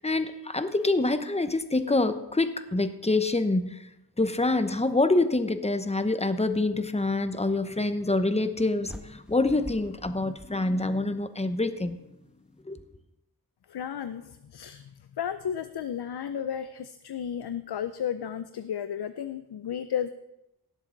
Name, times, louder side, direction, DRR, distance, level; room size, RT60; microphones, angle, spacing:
voice 1, 0.0-3.7 4.2-12.0 12.7-12.8, left 2 dB, 15° left, 10 dB, 0.8 m, -26 dB
sound 1, 8.8-11.2, equal, ahead, 1.1 m, -45 dB
voice 2, 13.7-14.8 15.2-20.1, left 8 dB, 90° left, 11 dB, 0.5 m, -33 dB
18.0 x 7.6 x 3.9 m, 0.89 s
wide cardioid pair, 50°, 38 cm